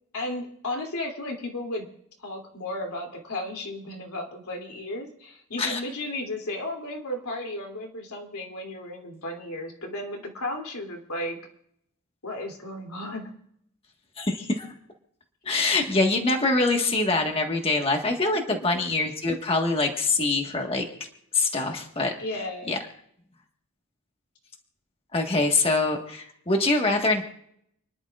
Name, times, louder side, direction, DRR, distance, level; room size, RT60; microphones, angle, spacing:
voice 1, 0.1-1.9 2.2-11.4 12.2-13.3 18.5-18.6 22.2-22.7, left 1 dB, 90° left, 2 dB, 2.9 m, -34 dB
voice 2, 14.2-14.7 15.4-20.9 21.3-22.1 22.7-22.8 25.1-27.2, left 3 dB, 25° left, 2 dB, 1.5 m, -24 dB
29.5 x 11.0 x 2.5 m, 0.70 s
head